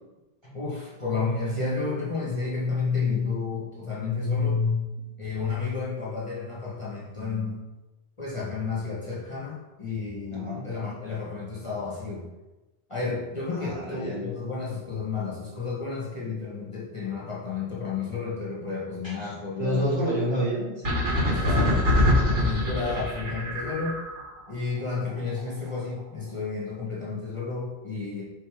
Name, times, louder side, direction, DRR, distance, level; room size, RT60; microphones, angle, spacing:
voice 1, 0.5-4.8 5.2-7.6 8.2-12.3 12.9-19.9 21.3-21.7 22.3-24.0 24.5-28.2, left 4 dB, 30° left, -6 dB, 1.4 m, -31 dB
voice 2, 10.3-10.7 13.5-14.3 19.0-19.3 19.6-21.0 21.4-21.8, equal, 25° right, -7 dB, 1.6 m, -29 dB
sound 1, 20.8-24.3, left 1 dB, 85° right, 2.2 m, -23 dB
5.5 x 3.9 x 5.0 m, 1.1 s
omnidirectional pair, 1.1 m